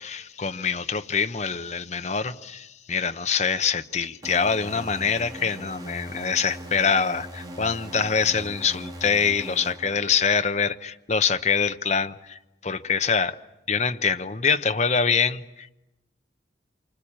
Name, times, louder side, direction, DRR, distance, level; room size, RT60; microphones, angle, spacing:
voice 1, 0.0-13.4 13.7-15.7, left 6 dB, 40° left, 9 dB, 0.9 m, -25 dB
sound 1, 4.2-10.7, right 1 dB, 25° right, 3.1 m, -40 dB
27.5 x 25.0 x 8.8 m, 0.96 s
head